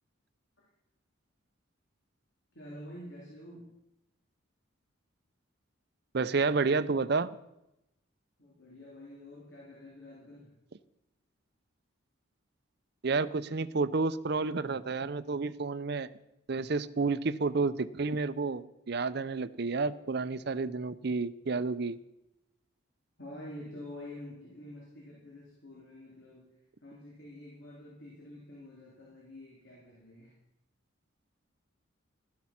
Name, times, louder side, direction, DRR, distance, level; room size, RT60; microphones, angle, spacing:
voice 1, 2.5-3.8 8.4-10.5 23.2-26.5 26.8-30.3, left 1 dB, 60° left, -4 dB, 3.4 m, -48 dB
voice 2, 6.1-7.3 13.0-16.1 16.5-22.0, right 4 dB, 55° right, 14 dB, 0.6 m, -30 dB
13.0 x 12.0 x 5.9 m, 0.89 s
head